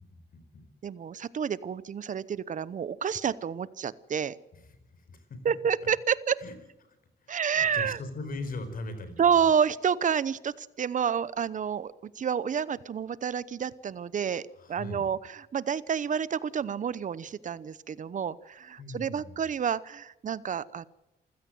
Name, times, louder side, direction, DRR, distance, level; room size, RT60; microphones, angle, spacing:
voice 1, 0.0-0.7 4.5-5.4 6.4-6.5 6.8-9.5 14.5-15.1 18.8-19.4, left 2 dB, 55° left, 10 dB, 4.6 m, -41 dB
voice 2, 0.8-4.3 5.4-6.4 7.3-8.0 9.2-20.9, right 7 dB, 45° right, 18 dB, 0.9 m, -29 dB
27.5 x 15.5 x 7.9 m, 0.96 s
wide cardioid pair, 150°, 18 cm